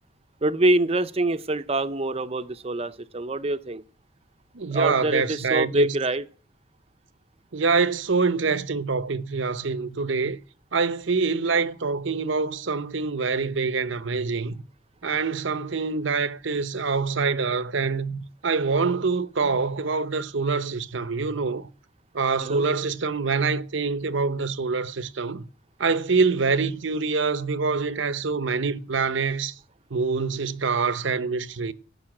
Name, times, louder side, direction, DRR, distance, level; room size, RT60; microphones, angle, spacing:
voice 1, 0.4-3.8 4.7-6.2 22.4-22.7, right 2 dB, 30° right, 0.7 m, -25 dB
voice 2, 4.5-6.0 7.5-10.4 10.7-14.6 15.0-21.7 22.1-25.5 25.8-29.5 29.9-31.7, right 4 dB, 65° right, 0.8 m, -25 dB
15.5 x 6.8 x 8.8 m
head